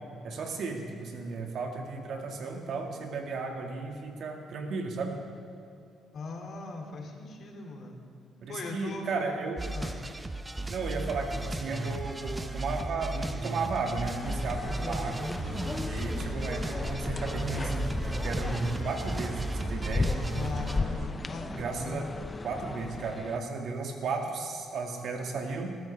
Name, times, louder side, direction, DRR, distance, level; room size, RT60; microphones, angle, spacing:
voice 1, 0.2-5.2 8.4-9.6 10.7-15.3 15.8-20.2 21.5-22.1 22.4-25.7, right 4 dB, 65° right, 2 dB, 2.0 m, -34 dB
voice 2, 6.1-8.0 8.5-9.4 9.7-10.0 20.3-21.8, left 3 dB, 60° left, 1 dB, 2.6 m, -39 dB
sound 1, 9.6-20.8, right 2 dB, 15° right, 0.7 m, -36 dB
sound 2, 14.2-23.4, left 3 dB, 25° left, 0.5 m, -35 dB
sound 3, 15.4-21.3, right 3 dB, 90° right, 0.8 m, -40 dB
20.5 x 13.0 x 3.5 m, 2.5 s
cardioid pair, 90°, 0 cm